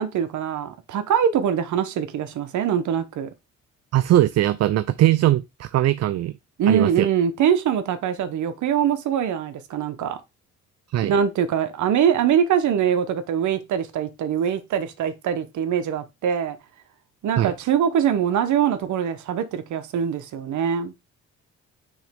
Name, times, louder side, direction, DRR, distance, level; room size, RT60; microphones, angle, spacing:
voice 1, 0.0-3.3 6.6-10.2 11.0-16.6 17.2-20.9, right 8 dB, 75° right, 1.0 m, -23 dB
voice 2, 3.9-6.3 6.7-7.1 10.9-11.1 17.4-17.5, right 13 dB, 60° right, 0.5 m, -20 dB
6.2 x 3.1 x 5.2 m
cardioid pair, 90°, 30 cm